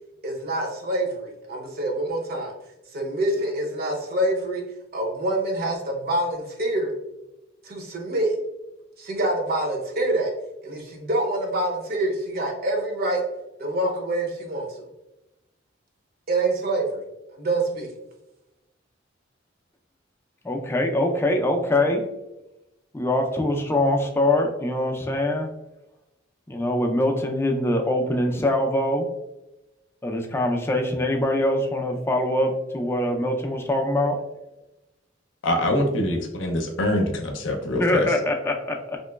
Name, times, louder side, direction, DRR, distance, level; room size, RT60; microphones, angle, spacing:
voice 1, 0.2-2.5 2.9-4.6 4.9-6.9 7.6-8.4 9.0-10.3 10.6-13.2 13.6-14.7 16.3-17.0 17.3-17.9, right 1 dB, 55° right, 1 dB, 0.7 m, -26 dB
voice 2, 20.4-22.0 22.9-25.5 26.5-29.1 30.0-34.2 37.7-39.0, left 1 dB, 15° left, 2 dB, 0.3 m, -23 dB
voice 3, 35.4-38.1, left 1 dB, 75° left, 4 dB, 0.5 m, -24 dB
3.0 x 2.9 x 2.2 m, 0.94 s
head